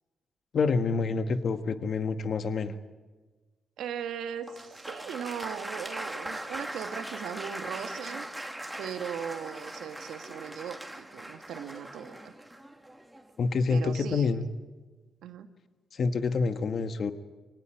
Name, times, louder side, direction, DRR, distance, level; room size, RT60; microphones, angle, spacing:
voice 1, 0.5-2.7 13.4-14.4 15.9-17.1, left 4 dB, 60° left, 9 dB, 1.4 m, -27 dB
voice 2, 3.8-8.3 8.8-12.3 13.7-14.4 15.2-15.5, right 8 dB, 85° right, 8 dB, 1.6 m, -38 dB
Applause, 4.5-13.4, right 1 dB, 10° right, 2.6 m, -40 dB
24.5 x 18.5 x 9.0 m, 1.3 s
cardioid pair, 75°, 0 cm